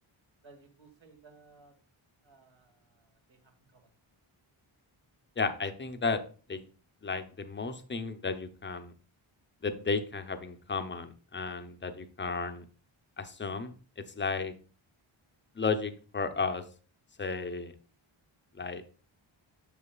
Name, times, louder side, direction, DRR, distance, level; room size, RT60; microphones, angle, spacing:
voice 1, 0.4-1.7 2.2-3.9, right 3 dB, 65° right, 3 dB, 1.7 m, -59 dB
voice 2, 5.4-6.2 6.5-6.6 7.0-8.9 9.6-12.6 13.2-14.5 15.6-16.6 17.2-17.7 18.6-18.8, left 4 dB, 25° left, 9 dB, 0.6 m, -33 dB
6.7 x 6.4 x 2.3 m, 0.38 s
wide cardioid pair, 100°, 50 cm